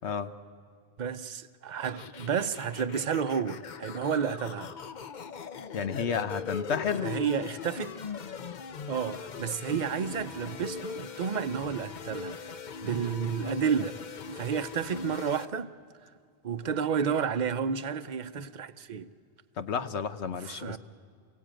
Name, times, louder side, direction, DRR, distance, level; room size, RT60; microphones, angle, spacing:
voice 1, 1.0-4.7 7.0-7.9 8.9-12.4 12.8-15.7 16.4-19.1 20.4-20.8, right 7 dB, 50° right, 0.8 m, -31 dB
sound 1, 1.8-15.5, left 5 dB, 50° left, 0.8 m, -40 dB
voice 2, 5.7-7.2 19.6-20.8, left 6 dB, 85° left, 1.3 m, -31 dB
29.0 x 17.0 x 8.9 m
omnidirectional pair, 1.1 m